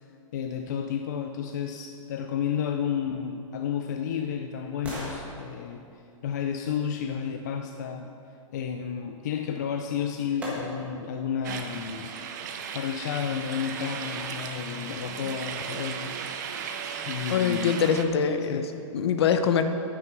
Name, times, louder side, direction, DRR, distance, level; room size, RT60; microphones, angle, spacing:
voice 1, 0.3-5.8 6.2-8.1 8.5-12.1 12.7-16.2 17.1-17.7 18.5-18.6, left 8 dB, 35° left, 5 dB, 0.4 m, -31 dB
sound 1, 3.5-7.4 9.5-9.6 10.4-11.1 11.6-11.7, equal, 10° right, 1.5 m, -41 dB
sound 2, 11.4-18.0, right 7 dB, 35° right, 0.6 m, -36 dB
voice 2, 17.3-19.6, left 7 dB, 50° left, 8 dB, 0.8 m, -24 dB
9.3 x 9.0 x 6.0 m, 2.7 s
hypercardioid pair, 175°, 17 cm